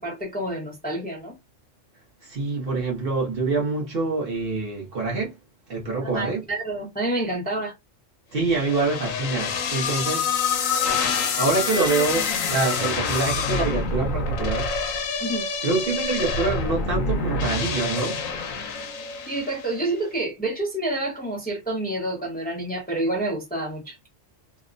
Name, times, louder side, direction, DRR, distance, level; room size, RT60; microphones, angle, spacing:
voice 1, 0.0-1.3 6.0-7.7 15.2-15.4 19.3-24.0, right 1 dB, 10° left, 0.7 m, -28 dB
voice 2, 2.2-5.3 5.7-6.4 8.3-10.3 11.4-14.7 15.6-18.2, right 3 dB, 50° right, 0.9 m, -25 dB
sound 1, 8.5-19.8, left 5 dB, 90° left, 1.0 m, -26 dB
2.8 x 2.1 x 2.4 m
omnidirectional pair, 1.3 m